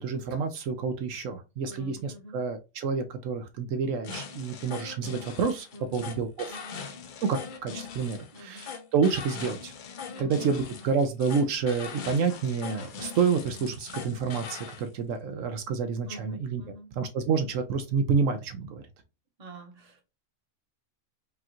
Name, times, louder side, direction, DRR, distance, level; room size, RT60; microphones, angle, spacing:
voice 1, 0.0-5.7 5.9-6.9 7.2-9.7 10.2-16.6 17.0-18.8, right 5 dB, 75° right, 1.0 m, -29 dB
voice 2, 1.6-2.4 5.7-6.1 6.5-6.8 8.3-8.7 10.1-10.6 10.8-10.9 16.1-16.9 19.4-20.0, right 2 dB, 35° right, 0.9 m, -47 dB
sound 1, 4.0-14.8, left 6 dB, 55° left, 0.5 m, -41 dB
5.0 x 2.4 x 2.8 m
omnidirectional pair, 1.4 m